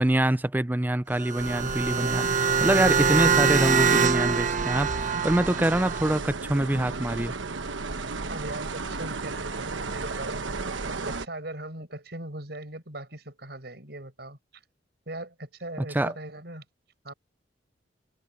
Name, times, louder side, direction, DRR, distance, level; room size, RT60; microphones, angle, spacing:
voice 1, 0.0-7.3 15.9-16.1, right 1 dB, 10° right, 0.4 m, -25 dB
sound 1, 1.1-6.2, right 5 dB, 40° right, 1.2 m, -24 dB
sound 2, 1.4-11.3, right 3 dB, 85° right, 1.1 m, -34 dB
voice 2, 8.3-14.6 15.1-16.6 17.0-17.1, right 1 dB, 60° right, 7.5 m, -40 dB
head